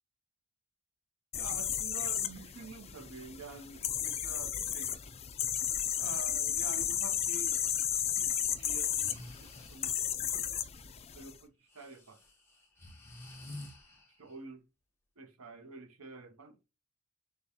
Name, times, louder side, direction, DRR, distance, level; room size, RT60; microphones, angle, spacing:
sound 1, 1.3-11.3, left 9 dB, 30° left, 0.4 m, -34 dB
voice 1, 1.3-4.9 6.0-7.6 8.2-9.9 10.2-10.6 11.1-12.2 14.2-14.6 15.2-16.6, right 4 dB, 75° right, 0.8 m, -48 dB
Breathing, 7.4-7.6 8.8-10.0 11.7-14.4, left 1 dB, 10° left, 1.2 m, -50 dB
6.8 x 2.3 x 2.8 m
head